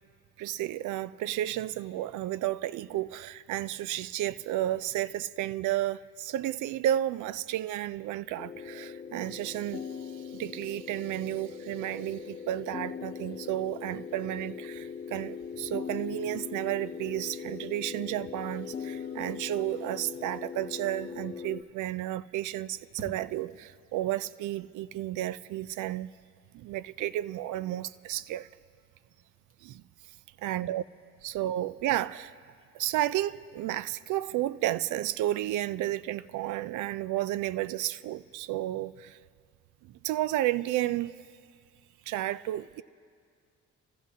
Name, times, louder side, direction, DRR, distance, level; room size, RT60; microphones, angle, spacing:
voice 1, 0.4-26.1 26.5-28.5 29.6-29.8 30.4-30.8 31.2-32.4 32.7-39.2 39.8-41.1 42.1-42.8, right 14 dB, 80° right, 0.4 m, -32 dB
sound 1, 8.4-21.6, left 7 dB, 30° left, 0.6 m, -40 dB
sound 2, 23.0-37.0, right 3 dB, 45° right, 1.8 m, -57 dB
27.0 x 14.5 x 2.8 m
cardioid pair, 90°, 30 cm